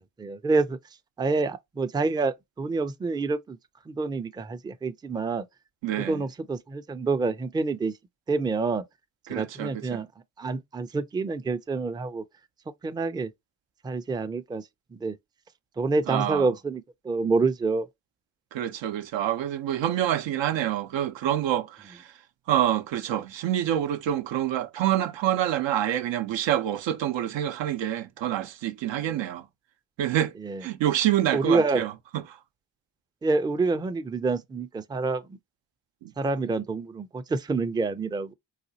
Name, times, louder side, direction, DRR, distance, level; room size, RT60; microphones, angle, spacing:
voice 1, 0.2-0.8 1.2-3.6 3.9-5.5 6.1-7.9 8.3-8.8 9.3-10.1 10.4-12.2 12.8-13.3 13.8-14.6 14.9-15.2 15.8-17.9 30.4-30.6 31.3-31.8 33.2-35.2 36.2-38.3, right 3 dB, 10° right, 0.3 m, -27 dB
voice 2, 5.8-6.2 9.3-10.0 16.1-16.5 18.5-22.1 22.5-29.4 30.0-30.3 30.6-31.9 36.0-36.1, right 11 dB, 80° right, 0.6 m, -27 dB
4.1 x 2.3 x 2.7 m
supercardioid pair, 50°, 44 cm